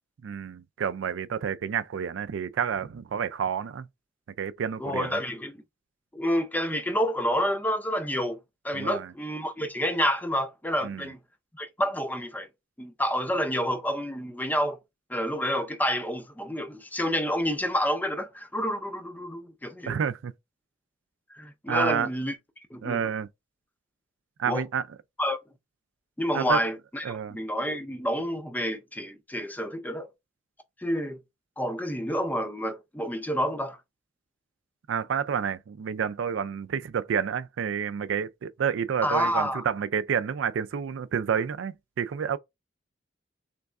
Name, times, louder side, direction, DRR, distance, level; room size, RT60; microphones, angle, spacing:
voice 1, 0.2-3.9 4.4-5.2 8.7-9.1 10.8-11.1 19.9-20.3 21.7-22.1 22.8-23.3 24.4-24.8 26.3-26.6 27.0-27.4 34.9-42.4, right 7 dB, 85° right, 0.4 m, -29 dB
voice 2, 4.8-5.6 6.1-8.4 8.6-11.2 11.6-12.5 12.8-14.8 15.1-19.9 21.3-22.4 22.7-23.0 24.5-24.6 25.2-25.4 26.2-30.1 30.8-31.2 31.6-33.8 39.0-39.6, equal, 10° left, 0.5 m, -29 dB
3.4 x 3.2 x 2.4 m
head